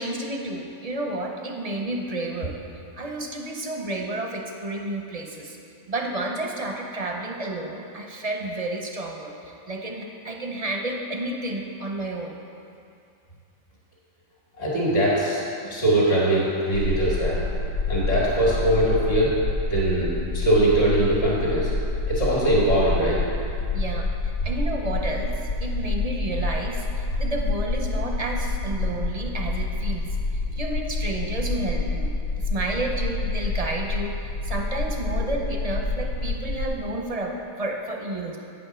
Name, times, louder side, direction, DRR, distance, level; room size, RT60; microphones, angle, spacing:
voice 1, 0.0-2.6 3.0-5.6 5.9-12.4 15.6-15.8 23.7-30.0 30.5-32.2 32.4-38.4, right 2 dB, 40° right, 1 dB, 0.6 m, -31 dB
voice 2, 14.6-15.4 15.7-17.4 17.9-19.3 19.7-21.7 22.1-23.2, right 1 dB, 55° left, -7 dB, 2.2 m, -21 dB
sound 1, 16.7-36.7, left 2 dB, 85° left, 1.1 m, -28 dB
9.1 x 5.2 x 6.1 m, 2.5 s
omnidirectional pair, 1.4 m